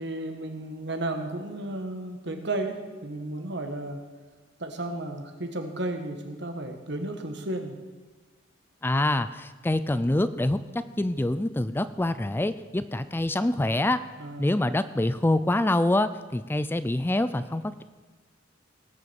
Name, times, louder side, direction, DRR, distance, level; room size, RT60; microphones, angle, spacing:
voice 1, 0.0-4.0 4.6-7.7 14.2-14.5, right 2 dB, 60° right, 5 dB, 1.6 m, -33 dB
voice 2, 8.8-14.0 14.4-17.8, left 1 dB, 10° left, 13 dB, 0.4 m, -26 dB
18.5 x 6.7 x 7.0 m, 1.3 s
head